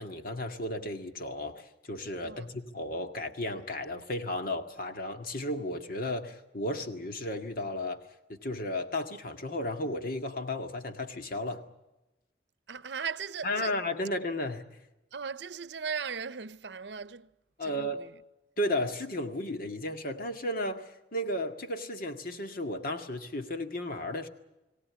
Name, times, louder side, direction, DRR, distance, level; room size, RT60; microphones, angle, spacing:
voice 1, 0.0-8.0 8.3-11.6 13.4-14.6 17.6-18.0 18.6-24.3, left 1 dB, 55° left, 2.0 m, -34 dB
voice 2, 12.7-13.8 15.1-17.3 17.6-18.2, right 6 dB, 70° right, 0.7 m, -38 dB
23.0 x 17.5 x 9.6 m
head